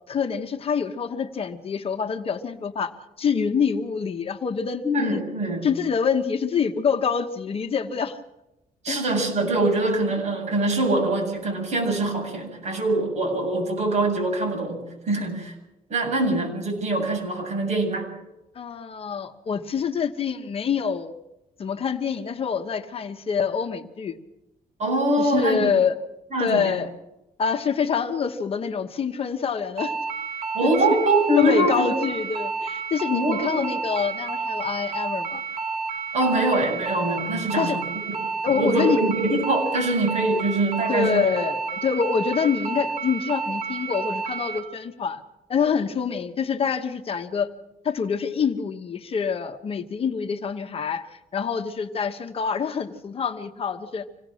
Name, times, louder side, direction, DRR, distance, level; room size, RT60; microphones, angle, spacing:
voice 1, 0.1-2.9 3.2-5.2 5.6-8.2 8.9-9.0 18.5-21.1 21.6-24.2 25.2-26.0 26.4-26.9 27.4-29.9 30.6-30.7 31.4-35.4 37.6-37.8 38.4-39.0 40.9-45.2 45.5-47.5 47.8-54.1, left 6 dB, 40° left, 6 dB, 1.1 m, -26 dB
voice 2, 4.8-5.7 8.8-14.8 15.1-15.5 15.9-18.1 24.8-25.6 26.3-26.8 30.5-31.9 33.1-33.6 36.1-38.2 38.4-41.3, right 2 dB, 50° right, 1 dB, 8.0 m, -23 dB
sound 1, 29.8-44.6, right 4 dB, 90° right, 4.0 m, -30 dB
26.0 x 18.0 x 6.4 m, 0.94 s
cardioid pair, 150°, 15 cm